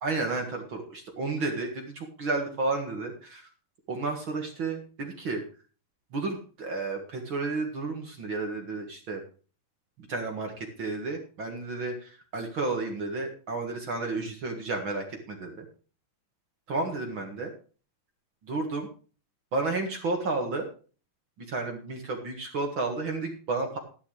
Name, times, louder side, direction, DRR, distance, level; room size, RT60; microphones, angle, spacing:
voice 1, 0.0-3.5 3.9-5.4 6.1-9.2 10.1-15.7 16.7-17.5 18.4-18.9 19.5-20.7 21.5-23.8, right 3 dB, 45° right, 3 dB, 1.9 m, -32 dB
12.5 x 11.5 x 3.3 m, 0.38 s
omnidirectional pair, 4.1 m